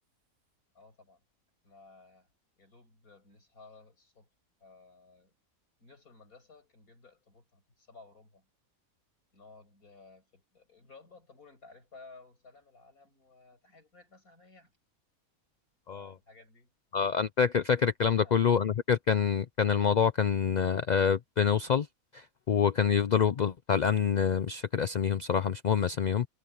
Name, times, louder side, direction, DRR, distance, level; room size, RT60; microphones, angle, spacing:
voice 1, 0.7-1.2 1.6-2.3 2.6-4.3 4.6-5.3 5.8-8.5 9.3-14.7 15.9-16.7 18.1-18.4, left 3 dB, 80° left, 7.3 m, -56 dB
voice 2, 16.9-21.9 22.1-26.3, left 7 dB, 65° left, 0.4 m, -26 dB
omnidirectional pair, 1.5 m